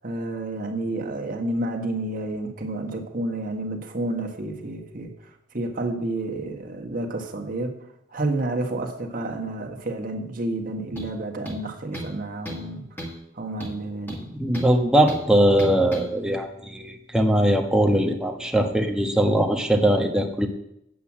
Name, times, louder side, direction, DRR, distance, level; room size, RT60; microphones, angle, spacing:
voice 1, 0.0-5.1 5.5-7.8 8.1-12.9 13.3-14.2, right 2 dB, 50° right, 3 dB, 1.6 m, -30 dB
sound 1, 11.0-11.2 11.5-12.2 12.5-12.7 13.0-13.2 13.6-14.7 15.1-15.3 15.6-16.1, equal, 10° left, 2.0 m, -35 dB
voice 2, 14.4-20.5, right 1 dB, 5° right, 3 dB, 1.1 m, -21 dB
8.6 x 8.1 x 7.4 m, 0.80 s
head